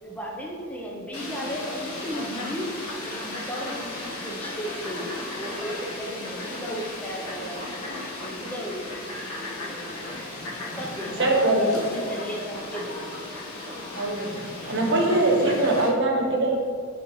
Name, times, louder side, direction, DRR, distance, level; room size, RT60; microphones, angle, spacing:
voice 1, 0.0-2.7 3.0-7.6 8.2-10.0 10.7-13.2, equal, 5° left, -2 dB, 0.6 m, -35 dB
Fowl, 1.1-15.9, left 2 dB, 90° left, 1.3 m, -35 dB
voice 2, 11.2-11.7 13.9-14.3 14.7-16.6, right 2 dB, 55° right, 0 dB, 1.0 m, -22 dB
9.8 x 4.0 x 3.0 m, 2.1 s
head